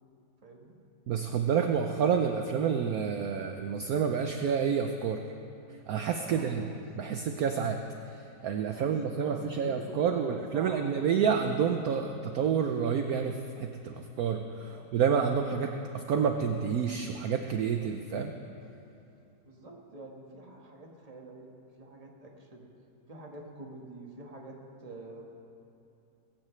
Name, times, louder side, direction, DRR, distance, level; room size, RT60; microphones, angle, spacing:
voice 1, 0.4-0.7 6.2-6.7 8.7-10.9 14.6-14.9 19.4-22.7 23.1-25.2, right 2 dB, 20° right, 0 dB, 1.5 m, -46 dB
voice 2, 1.1-5.2 5.9-6.6 6.9-7.8 8.4-18.3, right 7 dB, 65° right, 5 dB, 1.0 m, -29 dB
21.5 x 15.0 x 3.2 m, 2.7 s
omnidirectional pair, 1.9 m